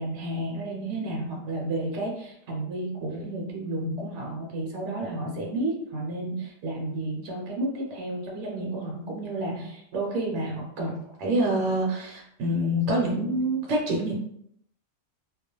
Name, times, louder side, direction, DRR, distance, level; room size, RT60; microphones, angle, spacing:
voice 1, 0.0-14.2, right 1 dB, 65° right, -1 dB, 0.9 m, -29 dB
2.3 x 2.1 x 2.9 m, 0.72 s
omnidirectional pair, 1.4 m